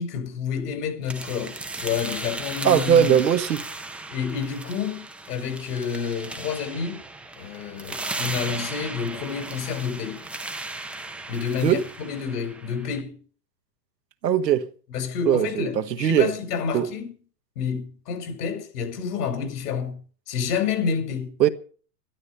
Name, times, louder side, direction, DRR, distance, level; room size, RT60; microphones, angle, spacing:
voice 1, 0.0-3.2 4.1-7.0 7.4-10.2 11.3-13.1 14.9-17.1 17.6-20.0 20.3-21.3, left 6 dB, 65° left, 5.5 m, -29 dB
sound 1, 1.1-13.0, right 2 dB, ahead, 0.6 m, -36 dB
voice 2, 2.6-3.6 11.6-11.8 14.2-14.7 15.2-16.3 16.7-16.9 21.4-21.5, right 9 dB, 80° right, 1.5 m, -20 dB
13.0 x 12.5 x 6.7 m
hypercardioid pair, 125°, 50 cm